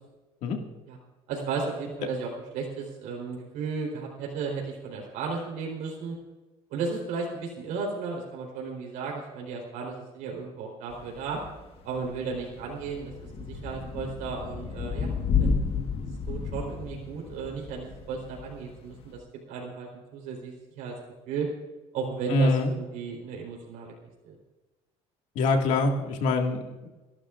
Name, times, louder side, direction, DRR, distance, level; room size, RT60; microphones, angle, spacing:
voice 1, 1.3-6.2 6.7-11.4 11.8-15.5 16.3-19.2 19.5-20.9 21.3-21.5 21.9-23.9 24.3-24.4, right 5 dB, 80° right, -1 dB, 4.0 m, -34 dB
Thunder / Rain, 10.9-19.2, left 5 dB, 45° left, 1.5 m, -32 dB
voice 2, 22.3-22.7 25.4-26.9, left 2 dB, 70° left, 2 dB, 2.1 m, -24 dB
30.0 x 12.0 x 2.5 m, 1.2 s
cardioid pair, 150°, 13 cm